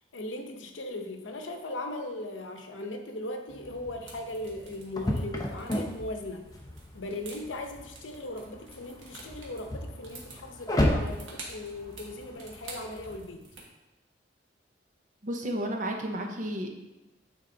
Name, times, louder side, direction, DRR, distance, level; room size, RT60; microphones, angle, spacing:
voice 1, 0.1-6.5 6.9-13.5, left 1 dB, 85° left, 5 dB, 0.8 m, -38 dB
sound 1, 3.5-13.2, left 1 dB, 20° left, 0.7 m, -34 dB
sound 2, 4.0-13.6, right 3 dB, 90° right, 1.5 m, -49 dB
voice 2, 15.2-16.7, right 1 dB, 40° right, 2 dB, 0.8 m, -32 dB
9.0 x 3.6 x 3.9 m, 1.0 s
head